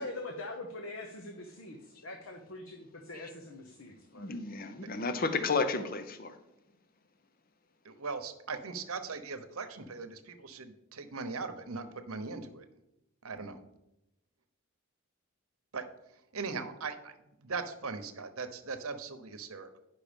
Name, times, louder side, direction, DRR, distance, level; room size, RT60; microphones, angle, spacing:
voice 1, 0.0-4.4, left 2 dB, 65° left, 4 dB, 0.9 m, -43 dB
voice 2, 4.1-6.4, left 4 dB, 40° left, 10 dB, 0.7 m, -32 dB
voice 3, 7.8-12.6 13.2-13.6 15.7-15.8 16.3-19.8, right 4 dB, 80° right, 9 dB, 1.0 m, -39 dB
10.0 x 5.9 x 5.1 m, 0.90 s
head